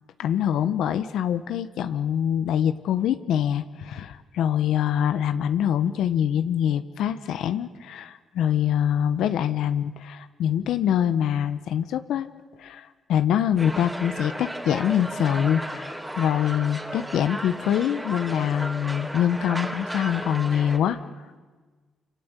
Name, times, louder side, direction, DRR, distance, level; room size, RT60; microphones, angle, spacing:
voice 1, 0.2-12.3 12.6-21.0, left 9 dB, 80° left, 10 dB, 1.2 m, -24 dB
sound 1, 13.6-20.8, equal, 5° right, 3.2 m, -34 dB
26.5 x 26.0 x 8.3 m, 1.4 s
cardioid pair, 90°, 0 cm